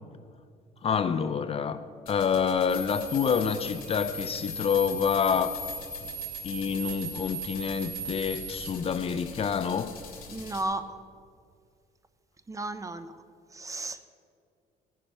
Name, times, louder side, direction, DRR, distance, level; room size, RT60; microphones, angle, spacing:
voice 1, 0.8-1.8 2.1-5.5 6.4-9.9, left 7 dB, 35° left, 0.5 m, -27 dB
voice 2, 1.5-2.0 10.3-11.0 12.5-13.2 13.5-14.0, right 2 dB, 20° right, 0.6 m, -35 dB
sound 1, 2.1-10.6, left 4 dB, 60° left, 3.2 m, -46 dB
sound 2, 2.7-8.7, right 1 dB, 40° right, 3.4 m, -38 dB
19.5 x 10.5 x 3.5 m
cardioid pair, 110°, 17 cm